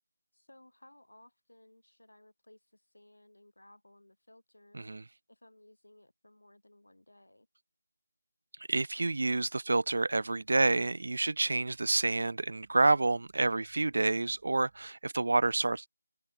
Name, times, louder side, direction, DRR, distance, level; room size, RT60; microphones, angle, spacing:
voice 1, 0.3-4.8 5.3-7.5, left 1 dB, 85° left, 5.7 m, -60 dB
voice 2, 8.7-15.9, right 2 dB, 60° right, 0.3 m, -28 dB
sound 1, 8.9-14.9, right 6 dB, 30° right, 3.0 m, -69 dB
open air
figure-of-eight pair, 160°, 0 cm